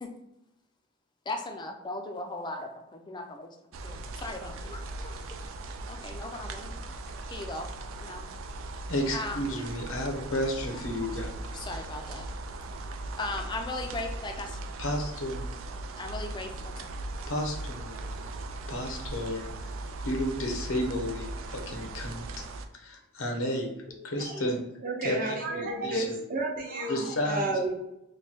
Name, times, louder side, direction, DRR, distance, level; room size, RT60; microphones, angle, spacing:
voice 1, 1.3-3.5 3.8-5.5 5.9-6.7 7.3-7.7 8.0-8.2 9.1-9.7 10.7-11.2 11.4-12.3 13.2-14.6 16.0-16.9, left 2 dB, 20° left, 4 dB, 0.4 m, -38 dB
sound 1, 3.7-22.7, right 2 dB, 75° right, 0.4 m, -39 dB
voice 2, 8.9-11.5 14.8-15.6 17.3-18.1 18.7-19.7 20.0-22.2 22.7-23.7 24.0-24.6 25.0-26.2 26.9-27.5, left 1 dB, 85° left, 2 dB, 0.8 m, -32 dB
voice 3, 23.9-24.5 24.8-27.7, right 2 dB, 40° right, 1 dB, 0.7 m, -32 dB
3.1 x 2.2 x 4.1 m, 0.86 s
head